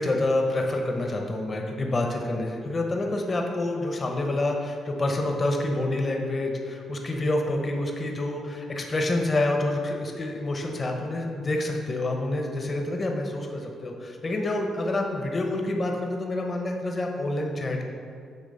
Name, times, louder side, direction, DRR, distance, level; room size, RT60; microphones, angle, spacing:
voice 1, 0.0-17.8, left 2 dB, 35° left, 2 dB, 0.8 m, -27 dB
8.2 x 3.1 x 6.4 m, 2.3 s
cardioid pair, 90°, 0 cm